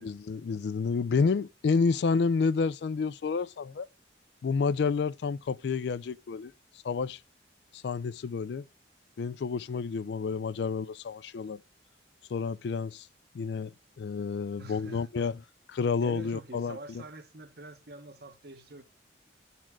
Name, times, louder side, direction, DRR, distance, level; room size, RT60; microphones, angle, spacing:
voice 1, 0.0-3.9 4.4-6.5 6.8-7.2 7.7-8.7 9.2-11.6 12.3-13.1 13.3-15.4 15.7-17.0, left 5 dB, 60° left, 0.3 m, -30 dB
voice 2, 14.6-15.3 16.0-18.8, right 2 dB, 55° right, 1.1 m, -46 dB
10.5 x 4.2 x 6.0 m
head